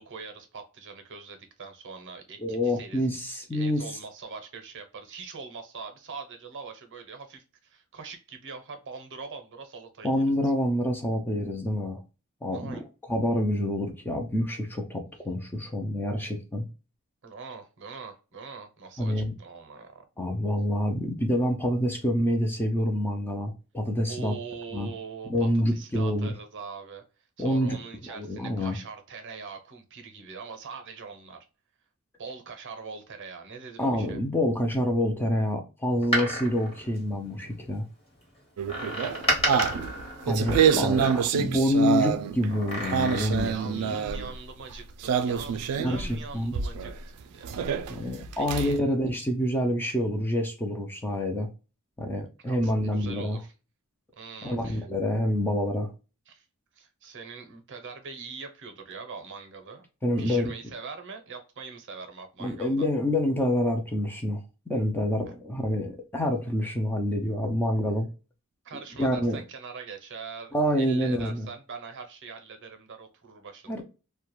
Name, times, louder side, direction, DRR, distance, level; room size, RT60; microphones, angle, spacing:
voice 1, 0.0-3.1 3.5-10.2 12.5-12.8 17.2-20.0 24.1-27.0 27.4-31.4 32.2-34.2 43.4-48.8 52.5-53.5 54.2-54.9 56.3-56.4 56.7-59.9 60.2-62.9 68.6-73.8, right 5 dB, 55° right, 0.6 m, -42 dB
voice 2, 2.4-3.9 10.0-12.0 12.4-12.8 13.1-16.7 19.0-19.3 20.2-24.3 24.7-24.9 25.3-26.3 27.4-27.8 28.1-28.8 33.8-37.9 40.3-43.9 45.8-46.1 46.3-46.5 47.9-51.5 52.0-53.4 54.4-55.9 60.0-60.5 62.4-68.1 69.0-69.4 70.5-71.5 73.7-73.8, left 1 dB, 10° left, 0.4 m, -27 dB
Door, 35.9-37.7 38.7-41.5 42.5-43.6 43.9-44.0, equal, 25° left, 1.0 m, -32 dB
sound 1, 38.6-42.5 42.8-44.4 45.0-46.1 46.5-46.9 47.4-48.8, right 7 dB, 85° right, 0.3 m, -26 dB
2.3 x 2.1 x 2.9 m
head